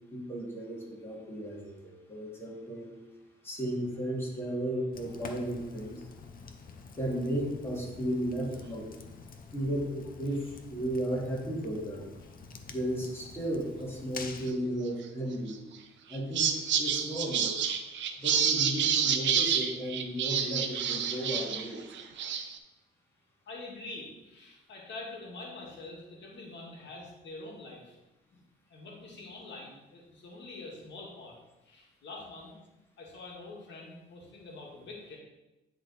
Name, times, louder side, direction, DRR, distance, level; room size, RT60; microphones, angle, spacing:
voice 1, 0.1-2.9 3.4-6.1 6.9-8.9 9.5-12.1 12.7-15.6 16.1-17.5 18.2-21.8, right 1 dB, 10° left, -4 dB, 2.5 m, -34 dB
Fire, 4.9-14.5, left 4 dB, 45° left, 0.8 m, -47 dB
sound 1, 15.5-15.8 16.1-21.7 21.9-22.6, right 7 dB, 65° right, 0.7 m, -28 dB
voice 2, 23.5-28.0 28.3-28.4 28.7-31.4 31.6-32.5 33.0-35.2, left 2 dB, 65° left, -2 dB, 1.9 m, -45 dB
10.0 x 3.8 x 4.2 m, 0.99 s
cardioid pair, 90°, 20 cm